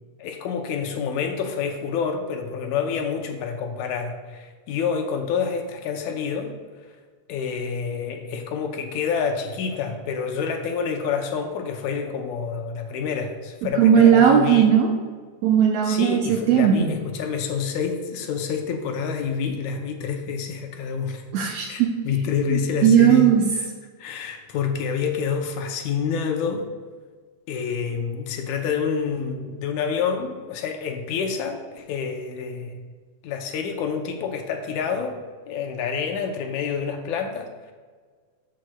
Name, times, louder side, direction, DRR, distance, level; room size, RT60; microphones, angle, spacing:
voice 1, 0.2-6.5 7.3-14.7 15.8-21.2 21.7-23.7 24.0-26.7 27.5-32.8 33.2-35.2 35.5-37.7, left 6 dB, 75° left, 4 dB, 2.0 m, -28 dB
voice 2, 13.8-14.9 15.4-16.9 21.3-21.9 22.5-23.4, right 8 dB, 75° right, 2 dB, 1.6 m, -17 dB
13.0 x 6.3 x 2.2 m, 1.5 s
omnidirectional pair, 3.5 m